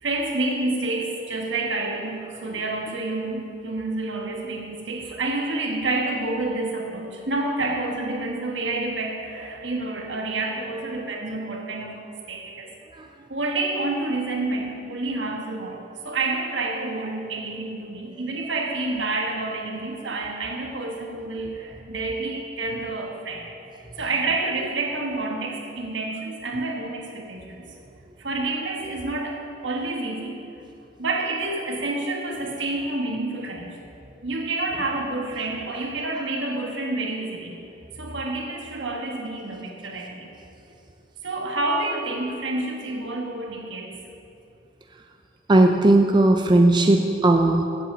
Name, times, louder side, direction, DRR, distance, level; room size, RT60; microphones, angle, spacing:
voice 1, 0.0-12.7 13.3-23.5 24.0-27.7 28.2-30.4 31.0-33.8 34.2-37.6 38.0-40.3 41.2-44.0, right 2 dB, 70° right, 1 dB, 1.5 m, -28 dB
voice 2, 45.5-47.6, right 2 dB, 25° right, 3 dB, 0.4 m, -17 dB
7.8 x 7.7 x 7.9 m, 2.7 s
head